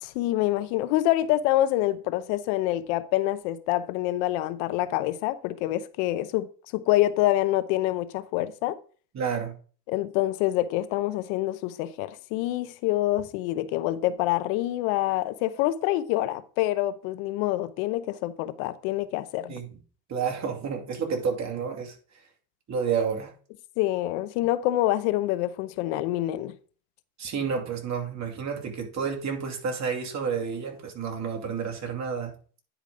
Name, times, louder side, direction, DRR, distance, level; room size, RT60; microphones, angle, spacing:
voice 1, 0.0-6.5 6.7-8.8 9.9-19.5 23.8-26.5, left 15 dB, 80° left, 0.8 m, -26 dB
voice 2, 9.1-9.5 19.5-19.8 20.1-21.9 22.7-23.3 27.2-32.3, right 6 dB, 40° right, 2.6 m, -30 dB
10.0 x 5.1 x 3.7 m
supercardioid pair, 100°, 43 cm